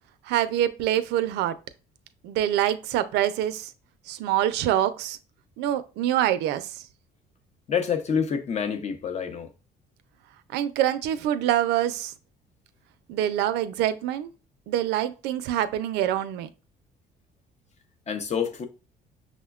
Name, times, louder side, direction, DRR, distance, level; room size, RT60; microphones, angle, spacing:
voice 1, 0.3-1.5 2.2-3.7 4.1-5.2 5.6-6.8 10.5-12.1 13.1-14.3 14.7-16.5, right 12 dB, 85° right, 0.4 m, -25 dB
voice 2, 7.7-9.5 18.1-18.7, left 7 dB, 40° left, 0.7 m, -27 dB
6.0 x 2.1 x 2.3 m
cardioid pair, 110°, 17 cm